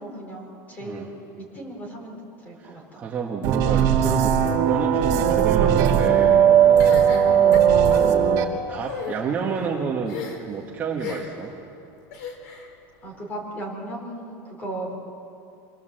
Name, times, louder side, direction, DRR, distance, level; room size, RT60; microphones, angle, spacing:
voice 1, 0.0-3.0 7.1-7.3 13.0-14.9, right 1 dB, 15° left, 1 dB, 4.2 m, -36 dB
voice 2, 2.6-6.5 8.0-10.2 10.5-11.5, right 6 dB, 20° right, -2 dB, 1.4 m, -30 dB
sound 1, 3.4-8.4, right 8 dB, 35° right, 2.2 m, -18 dB
sound 2, 6.8-8.1 8.8-9.2 10.1-10.6 11.0-11.4 12.1-12.7, left 7 dB, 65° left, 3.4 m, -35 dB
26.5 x 19.0 x 7.6 m, 2.8 s
supercardioid pair, 180°, 9 cm